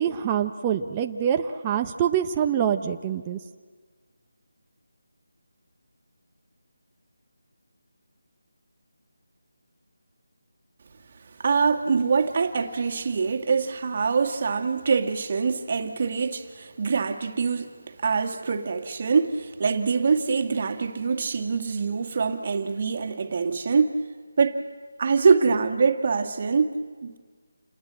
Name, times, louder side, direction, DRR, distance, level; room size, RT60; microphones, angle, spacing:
voice 1, 0.0-3.4, right 9 dB, 20° right, 0.9 m, -25 dB
voice 2, 11.4-24.0 24.4-24.6 25.0-26.7 27.0-27.2, right 5 dB, 40° right, 2.0 m, -24 dB
29.5 x 20.5 x 7.7 m
figure-of-eight pair, 165°, 0 cm